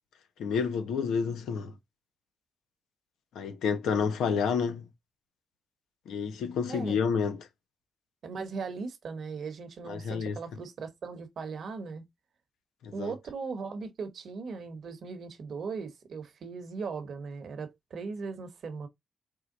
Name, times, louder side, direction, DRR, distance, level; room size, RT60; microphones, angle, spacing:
voice 1, 0.4-1.8 3.3-4.9 6.1-7.4 9.8-10.4 12.8-13.1, left 6 dB, 85° left, 0.9 m, -29 dB
voice 2, 6.7-7.0 8.2-12.0 12.9-18.9, right 4 dB, 70° right, 1.3 m, -38 dB
4.9 x 2.3 x 3.9 m
supercardioid pair, 50°, 0 cm